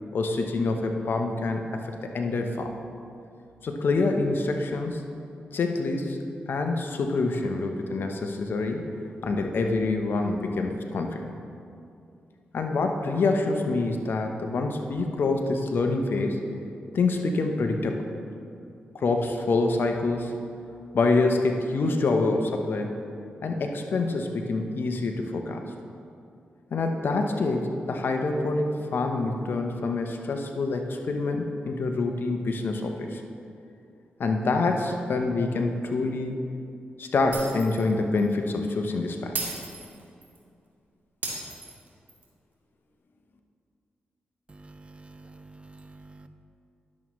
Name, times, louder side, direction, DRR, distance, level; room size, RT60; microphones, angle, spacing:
voice 1, 0.1-2.7 3.6-5.0 5.5-6.2 6.5-8.8 9.2-11.3 12.5-16.4 16.9-18.0 18.9-20.3 20.9-23.0 23.4-25.6 26.7-33.2 34.2-36.4 37.0-39.4, left 3 dB, 65° left, 4 dB, 0.9 m, -26 dB
Shatter, 37.3-37.9 38.2-38.3 39.3-40.4 41.2-42.2, right 3 dB, 55° right, 2.1 m, -35 dB
voice 2, 44.5-46.3, right 2 dB, 30° right, 9 dB, 0.5 m, -48 dB
11.0 x 7.3 x 3.1 m, 2.5 s
cardioid pair, 60°, 4 cm